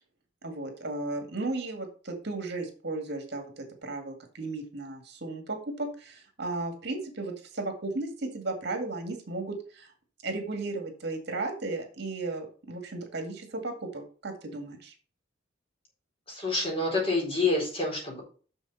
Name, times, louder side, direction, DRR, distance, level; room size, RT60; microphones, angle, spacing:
voice 1, 0.4-9.9 10.2-14.9, right 2 dB, 60° right, 4 dB, 2.1 m, -35 dB
voice 2, 16.3-18.2, left 3 dB, 30° left, -2 dB, 4.2 m, -27 dB
7.0 x 6.5 x 5.6 m, 0.39 s
head